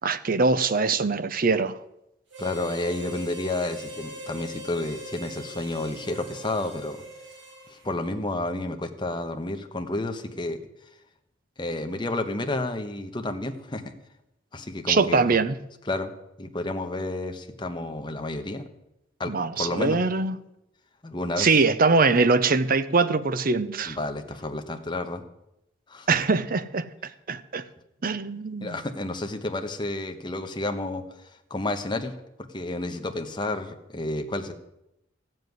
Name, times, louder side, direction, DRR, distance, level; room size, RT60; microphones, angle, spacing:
voice 1, 0.0-1.8 14.9-15.5 19.3-20.4 21.4-24.0 26.1-27.6 28.0-28.8, right 4 dB, 50° right, 0.7 m, -23 dB
Harmonica, 2.3-7.9, equal, 70° right, 4.1 m, -41 dB
voice 2, 2.4-7.0 7.7-10.6 11.6-13.8 14.5-15.2 15.9-16.1 16.4-18.6 19.2-20.0 21.0-21.5 23.9-25.2 25.9-26.2 28.6-31.0 31.5-32.1 32.5-34.5, left 2 dB, 25° left, 1.2 m, -31 dB
14.5 x 7.7 x 9.4 m
head